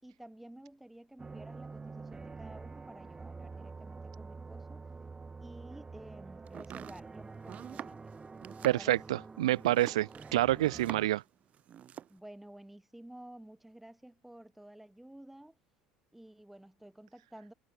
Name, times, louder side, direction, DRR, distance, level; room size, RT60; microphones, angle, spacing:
voice 1, 0.0-4.9 5.4-8.1 8.6-9.2 12.1-15.6 16.1-17.5, right 1 dB, 5° right, 3.6 m, -52 dB
sound 1, 1.2-11.1, right 4 dB, 20° right, 2.4 m, -47 dB
Domestic sounds home sounds, 6.5-11.3 11.5-12.2, right 10 dB, 45° right, 1.4 m, -46 dB
voice 2, 8.6-11.2, right 15 dB, 80° right, 0.4 m, -28 dB
hypercardioid pair, 70°, 3 cm